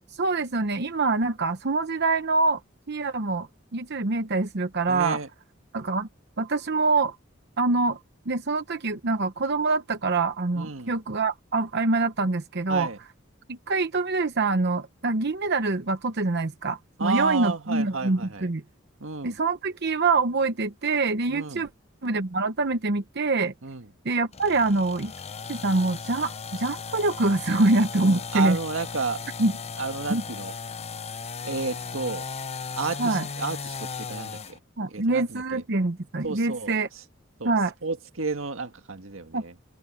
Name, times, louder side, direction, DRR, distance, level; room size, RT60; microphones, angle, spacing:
voice 1, 0.1-2.6 2.9-5.2 5.7-6.1 6.4-7.2 7.6-8.0 8.3-12.9 13.5-18.6 19.2-21.7 22.0-23.5 24.0-25.1 25.5-28.6 29.4-29.5 30.1-30.2 33.0-33.3 34.8-36.9 37.4-37.7 39.3-39.4, right 3 dB, 55° right, 0.9 m, -25 dB
voice 2, 4.9-5.3 10.6-10.9 12.7-13.0 17.0-18.5 19.0-19.4 21.3-21.6 23.6-23.9 28.0-29.3 29.8-30.5 31.4-32.3 32.7-34.6 34.9-35.6 36.2-36.7 37.4-37.5 37.8-39.5, right 4 dB, 85° right, 1.8 m, -31 dB
sound 1, 24.3-34.6, left 5 dB, 35° left, 0.7 m, -36 dB
head